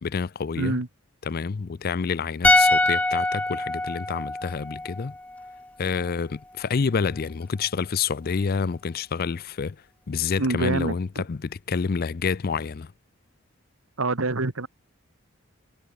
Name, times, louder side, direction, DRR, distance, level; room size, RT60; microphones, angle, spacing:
voice 1, 0.0-0.8 1.2-5.1 5.8-9.8 10.1-12.9, left 5 dB, 45° left, 0.5 m, -28 dB
voice 2, 0.6-0.9 10.4-10.9 14.0-14.7, right 2 dB, 75° right, 1.5 m, -25 dB
sound 1, 2.4-5.7 5.9-6.1, left 2 dB, 5° left, 0.6 m, -23 dB
head